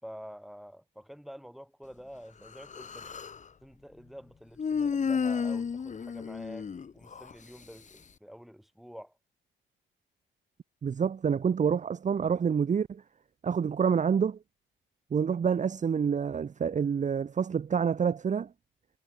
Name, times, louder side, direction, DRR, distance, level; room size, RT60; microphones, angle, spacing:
voice 1, 0.0-3.1 3.6-9.1, equal, ahead, 5.6 m, -48 dB
Human voice, 2.5-3.4 4.6-7.3, left 6 dB, 35° left, 1.7 m, -32 dB
voice 2, 10.8-13.0 13.4-14.4 15.1-18.5, right 7 dB, 40° right, 1.0 m, -27 dB
cardioid pair, 90°, 20 cm